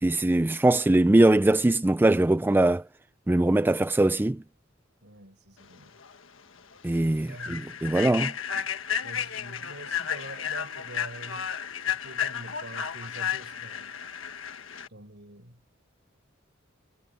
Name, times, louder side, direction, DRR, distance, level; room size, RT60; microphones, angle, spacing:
voice 1, 0.0-2.8 3.3-4.4 6.8-8.3, right 1 dB, 10° right, 0.3 m, -21 dB
voice 2, 5.0-6.0 7.3-7.8 9.0-11.5 11.9-14.0 14.9-15.6, right 1 dB, 60° right, 7.4 m, -45 dB
Human voice / Train, 6.0-6.2 6.6-6.8 7.3-14.9, left 8 dB, 75° left, 1.4 m, -33 dB
head